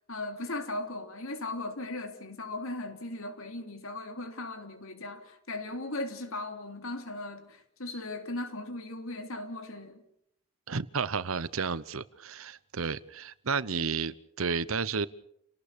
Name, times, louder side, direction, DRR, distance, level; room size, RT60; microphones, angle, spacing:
voice 1, 0.1-10.0, left 2 dB, 80° left, 3.3 m, -38 dB
voice 2, 10.7-15.1, right 5 dB, 80° right, 0.9 m, -32 dB
29.5 x 18.5 x 6.9 m
head